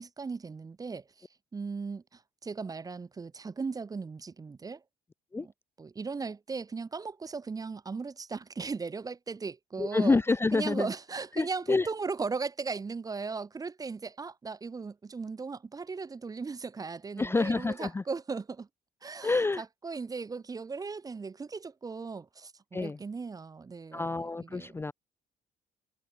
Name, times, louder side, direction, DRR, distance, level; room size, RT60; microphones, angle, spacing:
voice 1, 0.0-4.8 5.4-5.5 5.8-10.2 10.5-18.7 19.0-24.8, right 4 dB, 20° right, 0.7 m, -37 dB
voice 2, 9.8-10.9 11.4-11.9 17.2-18.0 19.2-19.6 22.7-23.0 23.9-24.9, left 3 dB, 15° left, 0.5 m, -28 dB
cardioid pair, 110°, 17 cm